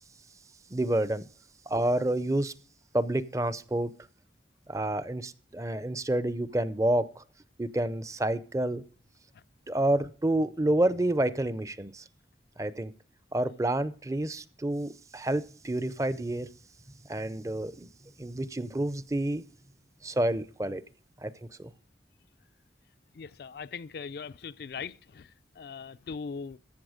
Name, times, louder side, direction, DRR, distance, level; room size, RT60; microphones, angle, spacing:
voice 1, 0.7-1.2 1.7-2.5 2.9-3.9 4.7-7.2 7.6-8.8 9.7-12.0 12.6-12.9 13.3-16.5 17.1-17.9 18.2-19.4 20.0-20.8 21.2-21.3 21.6-21.7, right 1 dB, 20° right, 0.5 m, -29 dB
voice 2, 23.1-26.6, left 5 dB, 60° left, 0.4 m, -40 dB
14.0 x 6.9 x 4.9 m
head